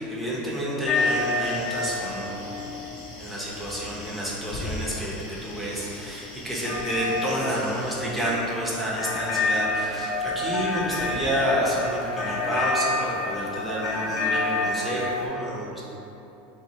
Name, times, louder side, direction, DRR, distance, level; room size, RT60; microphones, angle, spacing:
voice 1, 0.0-2.9 3.2-15.8, equal, ahead, -7 dB, 0.8 m, -29 dB
sound 1, 0.8-15.3, left 2 dB, 40° left, 0.6 m, -29 dB
sound 2, 0.9-8.0, left 2 dB, 70° left, 1.0 m, -45 dB
2.8 x 2.5 x 3.9 m, 2.9 s
supercardioid pair, 130°, 5 cm